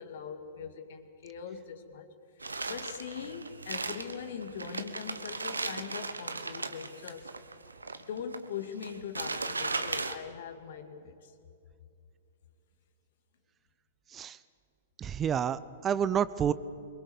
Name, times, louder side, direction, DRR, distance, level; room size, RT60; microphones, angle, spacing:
voice 1, 0.0-2.1 2.4-7.3 8.1-11.3, left 7 dB, 60° left, 8 dB, 2.2 m, -41 dB
sound 1, 2.4-10.1, right 3 dB, 90° right, 1.2 m, -37 dB
voice 2, 15.0-16.5, right 8 dB, 25° right, 17 dB, 0.6 m, -29 dB
24.0 x 21.5 x 7.2 m, 2.7 s
hypercardioid pair, 115°, 0 cm